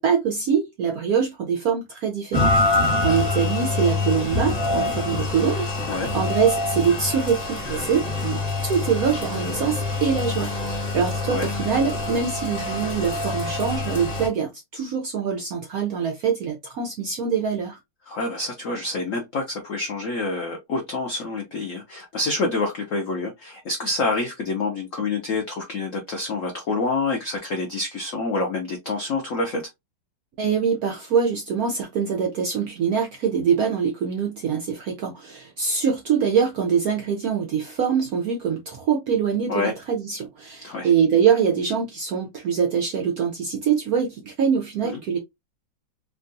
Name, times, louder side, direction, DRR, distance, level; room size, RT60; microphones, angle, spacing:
voice 1, 0.0-2.5 3.0-5.7 6.1-17.8 30.4-45.2, right 7 dB, 75° right, 0.8 m, -24 dB
Rain, 2.3-14.3, left 2 dB, 25° left, 0.9 m, -25 dB
voice 2, 18.1-29.6 39.5-39.7 40.6-40.9 44.8-45.0, left 3 dB, 75° left, 0.7 m, -27 dB
3.6 x 2.3 x 2.6 m
omnidirectional pair, 2.2 m